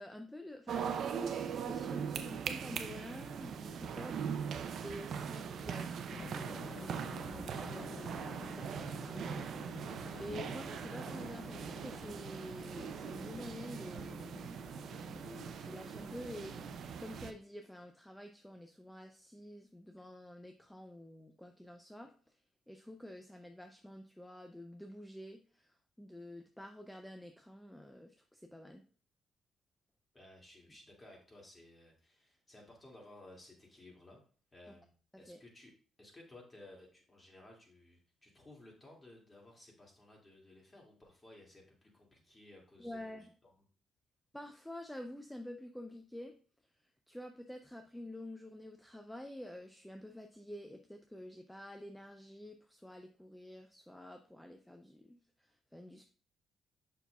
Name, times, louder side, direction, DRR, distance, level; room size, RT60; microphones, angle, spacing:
voice 1, 0.0-14.6 15.1-22.4 22.7-28.8 35.3-35.4 42.8-43.3 44.3-46.4 46.8-56.1, left 1 dB, 5° left, 5 dB, 0.5 m, -49 dB
sound 1, 0.7-17.3, right 7 dB, 65° right, 0.5 m, -41 dB
Drum, 6.1-17.1, left 4 dB, 50° left, 0.9 m, -51 dB
voice 2, 30.1-34.2 34.5-34.9 35.2-35.7 36.0-43.1 43.4-43.5, left 1 dB, 25° left, -1 dB, 2.3 m, -57 dB
7.0 x 5.8 x 2.3 m, 0.42 s
cardioid pair, 90°, 0 cm